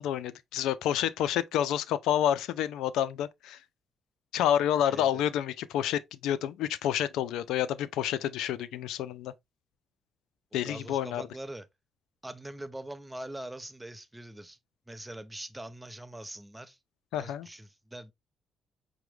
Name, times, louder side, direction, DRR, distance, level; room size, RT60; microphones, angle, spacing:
voice 1, 0.0-3.6 4.3-9.3 10.5-11.2 17.1-17.5, left 10 dB, 90° left, 0.3 m, -29 dB
voice 2, 4.9-5.2 10.6-11.7 12.2-14.6 14.9-16.8 17.2-18.1, right 1 dB, 10° right, 0.6 m, -43 dB
5.8 x 2.1 x 3.1 m
cardioid pair, 90°, 0 cm